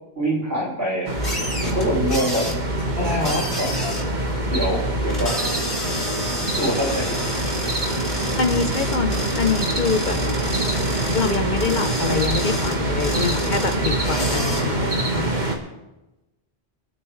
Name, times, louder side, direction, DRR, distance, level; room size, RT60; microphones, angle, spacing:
voice 1, 0.1-1.1 1.6-2.5 3.0-3.7 4.4-5.4 6.6-7.2 7.6-7.7, equal, 75° right, -5 dB, 6.6 m, -24 dB
sound 1, 1.0-15.5, right 2 dB, 45° right, 1.8 m, -25 dB
sound 2, 1.1-14.6, equal, 80° left, 3.4 m, -29 dB
voice 2, 8.4-10.2 11.1-15.4, left 4 dB, 50° left, 7 dB, 1.0 m, -25 dB
27.0 x 9.5 x 3.2 m, 1.0 s
omnidirectional pair, 1.1 m